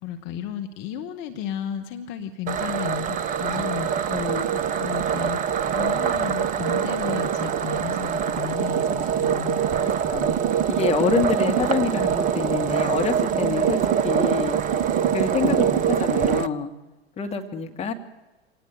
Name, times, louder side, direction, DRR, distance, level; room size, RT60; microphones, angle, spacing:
voice 1, 0.0-4.1 4.8-9.7, left 9 dB, 35° left, 7 dB, 1.8 m, -33 dB
sound 1, 2.5-16.5, right 8 dB, 25° right, 0.8 m, -24 dB
voice 2, 4.1-4.4 9.8-10.4 10.7-14.6 15.1-16.7 17.2-17.9, left 6 dB, 20° left, 4 dB, 2.1 m, -27 dB
26.0 x 19.0 x 9.5 m, 1.1 s
figure-of-eight pair, 95°, 33 cm